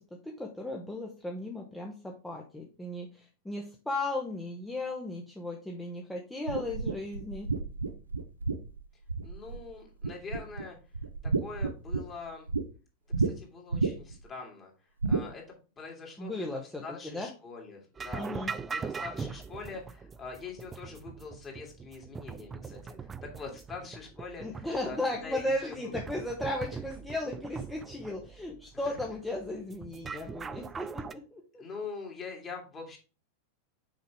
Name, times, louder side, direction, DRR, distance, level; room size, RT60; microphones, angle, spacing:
voice 1, 0.2-7.5 16.2-17.3 18.2-18.5 24.4-31.6, left 2 dB, 5° left, 0 dB, 0.9 m, -36 dB
sound 1, 6.5-9.7 10.0-10.6 10.9-12.6 13.1-13.3 13.7-14.2 15.0-15.3, right 4 dB, 80° right, 0.5 m, -30 dB
voice 2, 9.2-10.8 11.2-12.5 13.2-14.7 15.1-18.3 18.7-25.9 28.9-29.0 31.6-33.0, left 4 dB, 25° left, 1 dB, 2.3 m, -44 dB
sound 2, 18.0-31.1, right 5 dB, 20° right, 0.3 m, -41 dB
6.5 x 4.9 x 3.4 m, 0.34 s
figure-of-eight pair, 90°, 0 cm